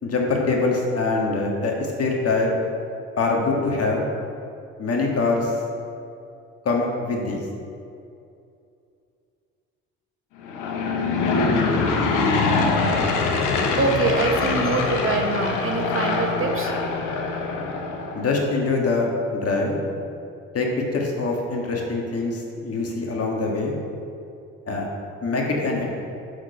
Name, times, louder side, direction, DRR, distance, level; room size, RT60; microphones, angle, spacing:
voice 1, 0.0-2.5 3.2-4.1 4.8-5.5 6.6-7.4 18.1-19.8 20.5-23.7 24.7-24.9 25.2-25.9, left 3 dB, 50° left, -1 dB, 1.7 m, -24 dB
Aircraft / Engine, 10.4-18.4, left 3 dB, 80° left, 1.0 m, -23 dB
voice 2, 13.5-16.7, right 3 dB, 45° right, 4 dB, 1.0 m, -24 dB
6.0 x 5.1 x 6.6 m, 2.5 s
supercardioid pair, 60°, 31 cm